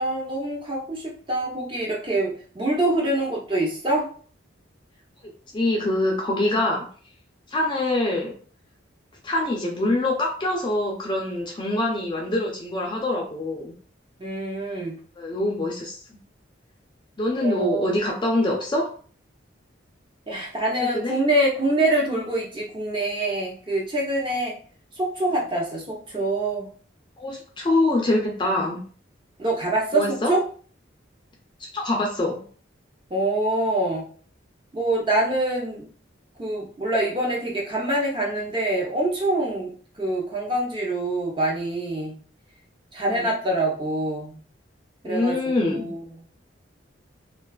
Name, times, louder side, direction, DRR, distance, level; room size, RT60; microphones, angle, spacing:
voice 1, 0.0-4.1 14.2-15.0 17.4-17.9 20.3-24.6 25.0-26.7 29.4-30.4 33.1-34.0 34.7-35.9 36.4-39.7 40.0-42.2 42.9-44.4 45.0-46.2, right 1 dB, 25° right, -2 dB, 0.6 m, -25 dB
voice 2, 5.5-6.8 7.5-8.3 9.2-13.7 15.2-16.0 17.2-18.9 20.9-21.2 27.2-28.8 29.9-30.3 31.6-32.4 43.1-43.3 45.0-45.9, left 2 dB, 25° left, -1 dB, 0.4 m, -24 dB
2.3 x 2.3 x 2.2 m, 0.43 s
head